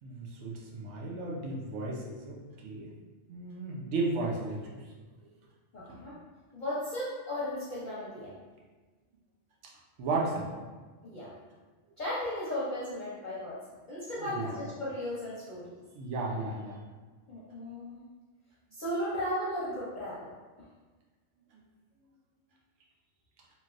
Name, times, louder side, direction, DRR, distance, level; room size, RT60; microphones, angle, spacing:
voice 1, 0.0-2.9 3.3-4.9 5.9-6.0 10.0-10.5 14.2-14.5 15.9-16.8, right 3 dB, 75° right, -2 dB, 0.9 m, -34 dB
voice 2, 5.7-6.1 6.5-8.4 11.0-11.3 12.0-13.6 13.9-15.7 17.3-18.0 18.7-20.3, left 1 dB, 50° left, -9 dB, 0.7 m, -35 dB
3.2 x 2.8 x 2.4 m, 1.3 s
omnidirectional pair, 1.2 m